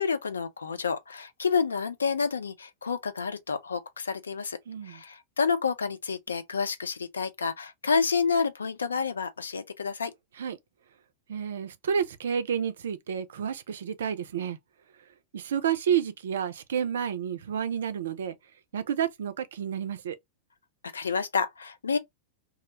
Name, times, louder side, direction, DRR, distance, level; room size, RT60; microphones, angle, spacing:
voice 1, 0.0-4.6 4.9-10.1 20.9-22.0, left 5 dB, 70° left, 0.4 m, -29 dB
voice 2, 4.7-5.0 10.4-10.6 11.3-14.6 15.3-18.3 18.7-20.2, right 8 dB, 65° right, 0.4 m, -30 dB
2.3 x 2.1 x 2.8 m
figure-of-eight pair, 90°, 0 cm